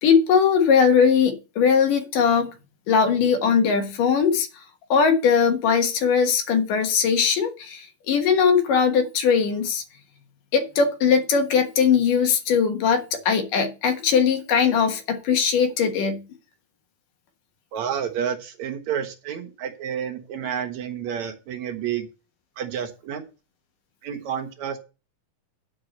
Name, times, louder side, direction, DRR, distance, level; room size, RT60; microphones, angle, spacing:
voice 1, 0.0-2.5 2.9-4.5 4.9-9.8 10.5-16.2, left 6 dB, 75° left, 3.0 m, -20 dB
voice 2, 17.7-22.1 22.6-23.2 24.0-24.8, right 8 dB, 60° right, 2.5 m, -30 dB
10.0 x 4.8 x 7.9 m
omnidirectional pair, 3.8 m